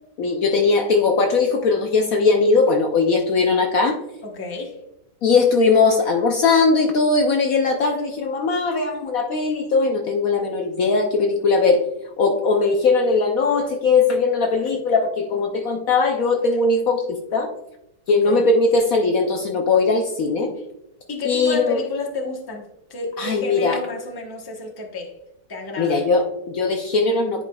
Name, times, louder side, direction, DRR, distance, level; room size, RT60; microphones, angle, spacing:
voice 1, 0.2-4.0 5.2-11.8 12.2-17.5 18.1-20.5 21.2-21.8 23.2-23.8 25.8-27.4, left 4 dB, 65° left, 3 dB, 1.0 m, -19 dB
voice 2, 4.2-4.8 18.1-18.5 21.1-25.1 25.5-26.0, left 3 dB, 20° left, 0 dB, 0.8 m, -30 dB
10.0 x 5.0 x 2.3 m, 0.85 s
omnidirectional pair, 1.8 m